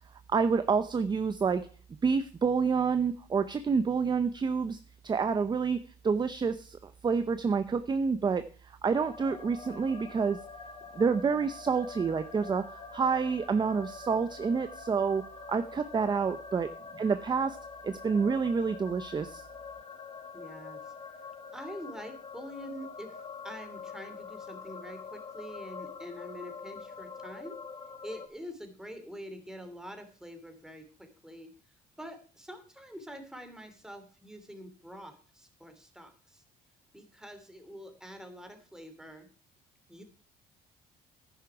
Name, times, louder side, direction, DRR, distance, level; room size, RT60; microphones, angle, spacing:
voice 1, 0.3-1.7 2.0-4.8 5.0-5.8 6.0-8.4 8.8-10.4 10.9-12.7 12.9-15.2 15.5-16.7 16.9-17.6 17.8-19.4, right 5 dB, 25° right, 11 dB, 0.7 m, -28 dB
sound 1, 8.9-28.3, left 4 dB, 35° left, 1.9 m, -45 dB
voice 2, 20.3-20.9 21.5-23.2 23.4-27.6 28.0-31.5 32.0-36.4 36.9-39.3 39.9-40.0, equal, 5° right, 6 dB, 2.8 m, -45 dB
11.0 x 10.0 x 4.7 m, 0.39 s
cardioid pair, 110°, 17 cm